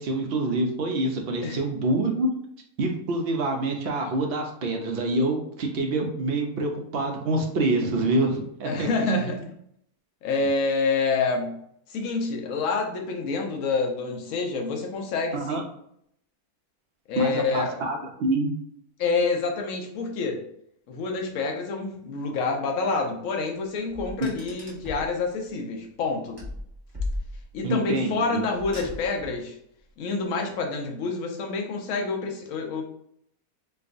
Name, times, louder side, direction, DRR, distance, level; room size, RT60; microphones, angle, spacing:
voice 1, 0.0-2.3 2.8-9.4 15.3-15.6 17.2-18.5 27.6-28.4, right 2 dB, 65° right, 2 dB, 0.6 m, -26 dB
voice 2, 8.6-9.4 10.2-11.6 11.9-15.6 17.1-17.9 19.0-20.4 20.9-26.4 27.5-29.6 30.0-32.9, left 4 dB, 70° left, 2 dB, 1.0 m, -27 dB
Car, 23.9-25.1 26.4-27.7 28.5-29.4, left 2 dB, 20° right, 0.8 m, -35 dB
4.5 x 2.3 x 2.5 m, 0.71 s
omnidirectional pair, 1.6 m